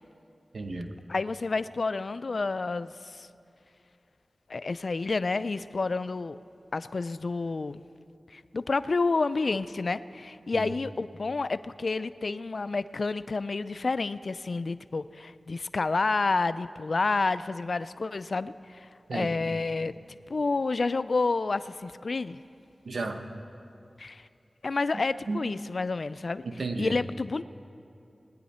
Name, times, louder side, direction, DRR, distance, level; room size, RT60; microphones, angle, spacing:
voice 1, 0.5-0.9 10.5-10.7 19.1-19.4 22.8-23.2 24.9-25.4 26.4-27.0, right 3 dB, 80° right, 5 dB, 1.0 m, -34 dB
voice 2, 1.1-3.3 4.5-6.4 6.7-7.8 8.3-22.4 24.0-24.3 24.6-26.4 26.8-27.4, left 3 dB, 65° left, 15 dB, 0.3 m, -29 dB
20.5 x 10.0 x 4.3 m, 2.6 s
cardioid pair, 50°, 0 cm